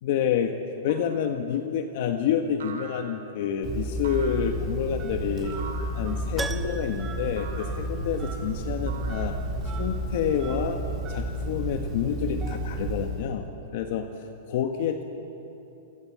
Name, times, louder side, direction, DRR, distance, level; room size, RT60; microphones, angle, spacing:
voice 1, 0.0-0.5 0.8-5.6 5.9-9.4 9.6-10.8 11.1-14.1 14.5-15.0, left 8 dB, 50° left, 5 dB, 1.5 m, -28 dB
sound 1, 0.9-1.3 2.6-3.4 4.0-4.6 5.6-6.1 7.4-7.9 8.9-9.6, right 5 dB, 90° right, 3.5 m, -43 dB
Telephone, 3.6-13.3, right 1 dB, 25° right, 3.8 m, -32 dB
Keyboard (musical), 6.4-8.4 8.7-8.8 11.5-11.6 11.8-11.9, right 3 dB, 5° right, 0.8 m, -38 dB
29.0 x 23.5 x 7.5 m, 3.0 s
supercardioid pair, 160°, 0 cm